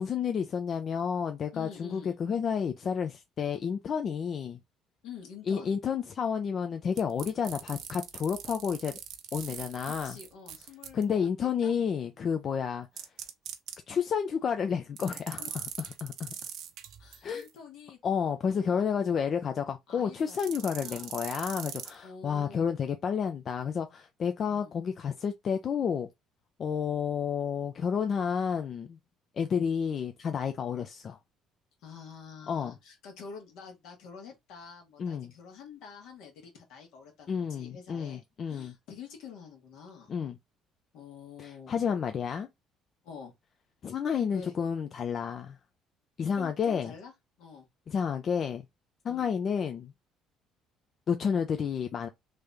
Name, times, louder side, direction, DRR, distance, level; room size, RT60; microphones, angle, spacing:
voice 1, 0.0-4.6 5.5-8.9 9.3-10.2 10.9-12.9 13.9-16.3 17.2-17.5 18.0-26.1 26.6-29.0 29.4-31.2 32.5-32.7 35.0-35.3 37.3-38.7 40.1-40.3 41.4-42.5 43.8-45.6 46.2-46.9 47.9-48.6 49.0-49.9 51.1-52.1, left 7 dB, 50° left, 0.5 m, -30 dB
voice 2, 1.5-2.2 5.0-5.7 9.9-11.7 15.4-15.7 17.0-18.0 18.5-19.2 19.9-21.1 22.0-22.7 24.5-24.8 31.8-40.1 40.9-41.8 43.0-43.3 44.3-44.5 46.4-47.1 47.4-47.7 49.0-49.3, left 6 dB, 75° left, 1.4 m, -48 dB
sound 1, 7.0-11.0 13.0-13.8 15.0-17.5 20.3-21.9, right 9 dB, 70° right, 0.7 m, -41 dB
3.3 x 2.7 x 3.4 m
supercardioid pair, 70°, 0 cm